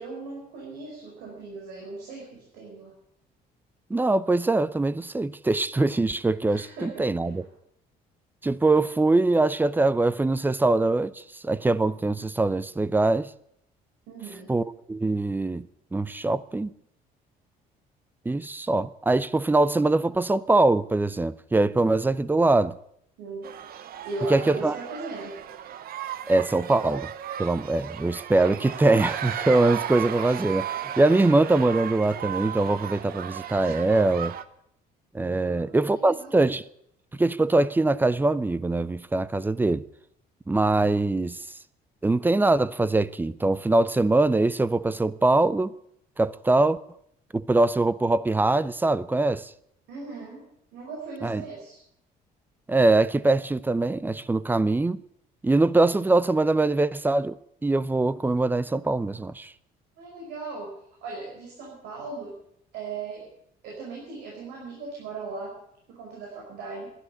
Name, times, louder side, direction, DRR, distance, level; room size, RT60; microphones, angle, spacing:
voice 1, 0.0-2.9 6.5-7.5 14.1-14.5 23.2-23.6 24.0-25.4 35.4-36.4 49.9-50.4 50.7-51.8 60.0-62.4 62.7-63.3 63.6-65.6 65.9-66.9, right 3 dB, 90° right, 5.4 m, -38 dB
voice 2, 3.9-7.4 8.4-13.3 14.5-14.6 14.9-15.7 15.9-16.7 18.3-22.8 24.3-24.8 26.3-27.1 27.4-30.7 31.0-34.3 35.1-36.6 37.2-39.8 40.5-41.4 42.0-45.7 46.2-46.8 47.3-49.5 51.2-51.4 52.7-55.0 55.4-57.4 57.6-59.5, right 2 dB, 10° right, 0.6 m, -23 dB
sound 1, 23.4-34.4, right 10 dB, 60° right, 0.9 m, -35 dB
13.0 x 11.5 x 9.7 m
cardioid pair, 110°, 17 cm